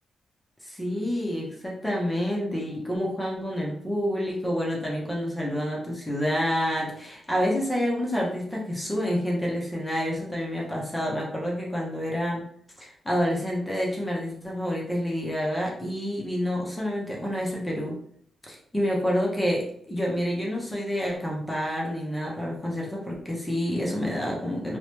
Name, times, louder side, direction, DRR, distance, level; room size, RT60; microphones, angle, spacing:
voice 1, 0.6-12.4 12.8-18.0 18.5-24.8, equal, 10° left, -3 dB, 0.6 m, -28 dB
3.0 x 2.1 x 2.9 m, 0.63 s
wide cardioid pair, 175°, 0 cm